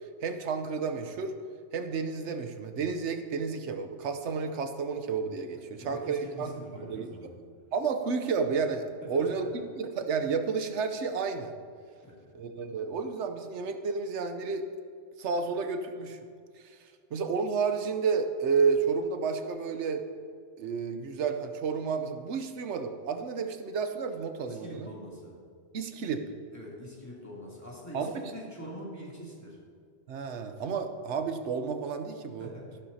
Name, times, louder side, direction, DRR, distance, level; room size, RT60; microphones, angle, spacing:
voice 1, 0.2-1.3 1.7-7.3 7.7-11.5 12.3-14.6 15.2-16.2 16.6-16.8 17.1-20.0 20.6-24.9 25.7-26.2 27.9-28.3 30.1-32.5, right 5 dB, 85° right, 7 dB, 1.1 m, -31 dB
voice 2, 5.7-7.3 9.0-9.5 12.0-12.3 24.4-25.3 26.5-29.6 32.4-32.8, equal, 15° left, -6 dB, 2.6 m, -44 dB
13.5 x 11.5 x 2.8 m, 2.2 s
omnidirectional pair, 1.1 m